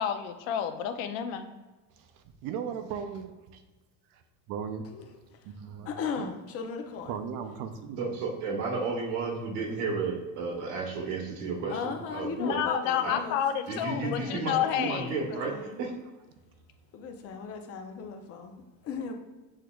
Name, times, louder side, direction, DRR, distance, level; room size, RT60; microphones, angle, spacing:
voice 1, 0.0-1.5 12.4-15.2, left 9 dB, 75° left, 8 dB, 0.6 m, -30 dB
voice 2, 2.0-3.6 4.1-4.9 5.4-5.9 6.2-6.3 7.1-8.0, right 7 dB, 60° right, 7 dB, 0.6 m, -37 dB
voice 3, 5.8-7.1 11.7-13.4 13.7-15.8 16.9-19.1, left 5 dB, 40° left, 4 dB, 0.6 m, -38 dB
voice 4, 8.0-12.6 13.0-13.2 13.7-15.9, right 4 dB, 85° right, 1 dB, 1.3 m, -32 dB
6.5 x 3.6 x 2.3 m, 1.2 s
cardioid pair, 135°, 38 cm